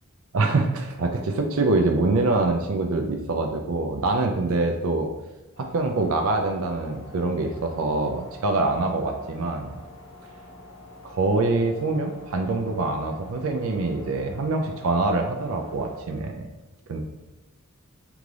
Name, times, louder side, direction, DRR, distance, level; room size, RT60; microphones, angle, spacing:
voice 1, 0.3-5.1 5.6-9.8 11.0-16.5 16.9-17.0, right 3 dB, 70° right, 4 dB, 0.4 m, -25 dB
sound 1, 5.5-16.0, left 2 dB, 60° left, 1.1 m, -46 dB
3.8 x 3.5 x 3.3 m, 1.1 s
head